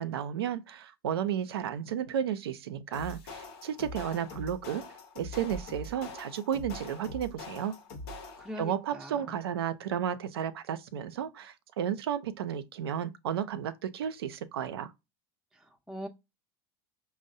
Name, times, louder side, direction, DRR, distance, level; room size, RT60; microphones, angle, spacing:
voice 1, 0.0-4.9 5.2-7.8 8.6-14.9, right 9 dB, 90° right, 0.4 m, -33 dB
sound 1, 2.9-8.6, left 2 dB, 80° left, 0.8 m, -43 dB
voice 2, 8.4-9.3 15.5-16.1, equal, 5° right, 0.5 m, -42 dB
5.2 x 2.0 x 2.6 m
hypercardioid pair, 90°, 13 cm